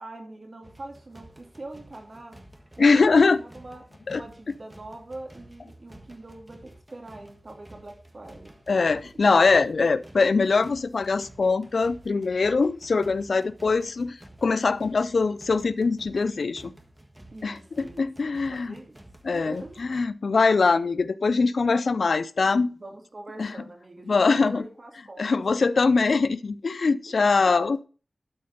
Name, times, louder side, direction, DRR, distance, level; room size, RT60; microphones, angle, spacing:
voice 1, 0.0-2.4 2.8-3.8 4.1-8.5 17.3-19.0 19.3-19.8 22.6-25.7 26.9-27.8, right 2 dB, 55° right, 2.8 m, -43 dB
sound 1, 0.6-20.1, right 1 dB, 20° right, 1.5 m, -51 dB
voice 2, 2.8-3.4 4.1-4.2 8.7-16.7 17.4-17.6 18.0-18.7 19.2-22.7 23.4-23.5 24.1-24.6 25.2-27.8, left 4 dB, 80° left, 0.4 m, -22 dB
12.5 x 4.3 x 5.3 m
wide cardioid pair, 60°, 0 cm